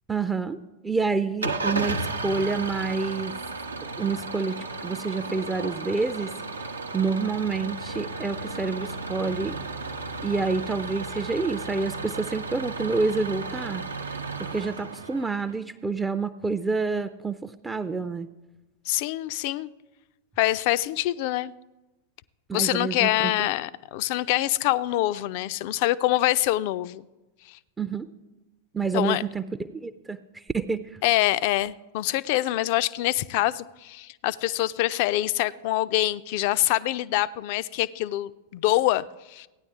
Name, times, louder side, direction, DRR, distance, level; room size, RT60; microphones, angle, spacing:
voice 1, 0.1-0.6 0.8-3.3 4.0-6.3 6.9-9.6 10.2-13.8 14.4-18.3 22.5-23.5 27.8-28.1 28.7-29.5 29.7-31.0, right 4 dB, 10° right, 0.4 m, -28 dB
Engine starting / Idling, 1.4-15.6, right 3 dB, 75° right, 0.7 m, -34 dB
voice 2, 18.9-19.7 20.4-21.5 22.5-27.0 27.5-27.6 28.9-29.2 31.0-39.5, left 15 dB, 45° left, 0.4 m, -25 dB
16.5 x 9.7 x 3.6 m
figure-of-eight pair, 90°, 0 cm